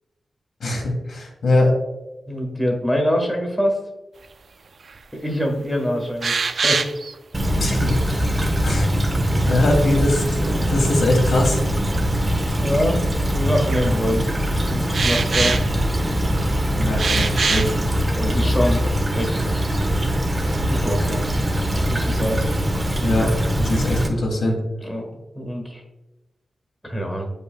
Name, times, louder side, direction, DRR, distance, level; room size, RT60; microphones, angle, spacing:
voice 1, 0.6-1.7 7.5-8.3 8.6-8.9 9.4-11.6 16.7-17.7 23.0-23.3 23.6-24.6, left 1 dB, 75° left, -1 dB, 1.7 m, -22 dB
voice 2, 2.3-3.8 5.1-6.8 11.9-12.1 12.6-14.3 14.6-15.6 18.1-18.8 19.1-19.6 20.7-21.3 21.9-22.4 24.8-25.1 25.3-25.8 26.8-27.3, equal, 5° left, 1 dB, 1.5 m, -24 dB
sound 1, 4.9-5.0 5.5-5.6 6.2-7.1 9.3-10.1 11.3-11.4 12.3-12.4 13.5-13.9 14.9-16.3 17.0-17.8 18.4-18.5 18.8-18.9 19.3-19.8 20.2-20.8, right 4 dB, 55° right, 0.3 m, -24 dB
Stream / Trickle dribble, 7.3-24.1, equal, 25° right, 0.9 m, -22 dB
8.2 x 5.3 x 2.3 m, 1.0 s
wide cardioid pair, 105°, 0 cm